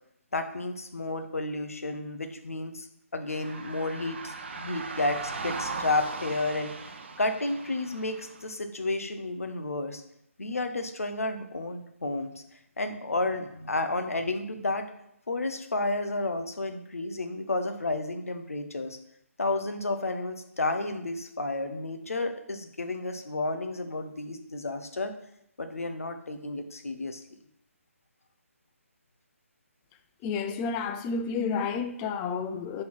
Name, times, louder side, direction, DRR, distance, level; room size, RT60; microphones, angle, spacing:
voice 1, 0.3-2.9 3.1-10.0 10.4-12.3 12.8-14.9 15.3-19.0 19.4-25.1 25.6-27.2, left 2 dB, 70° left, 1.1 m, -31 dB
sound 1, 3.3-8.5, right 4 dB, 50° right, 0.8 m, -38 dB
voice 2, 30.2-32.8, left 5 dB, 15° left, 0.4 m, -30 dB
6.6 x 4.1 x 6.0 m
figure-of-eight pair, 145°, 8 cm